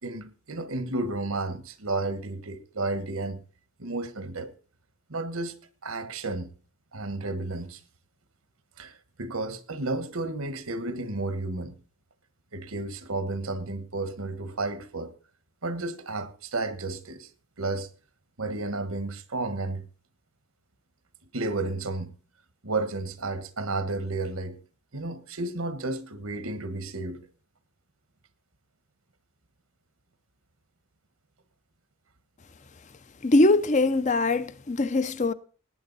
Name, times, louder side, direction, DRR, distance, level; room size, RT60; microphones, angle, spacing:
voice 1, 0.0-3.4 3.8-4.5 5.1-5.6 5.8-6.5 6.9-7.8 8.8-11.7 12.5-15.1 15.6-17.3 17.6-17.9 18.4-19.8 21.3-22.1 22.6-24.6 24.9-27.3, right 2 dB, 80° right, 1.3 m, -32 dB
voice 2, 33.2-35.3, left 2 dB, 35° left, 0.6 m, -22 dB
18.0 x 8.9 x 4.0 m
head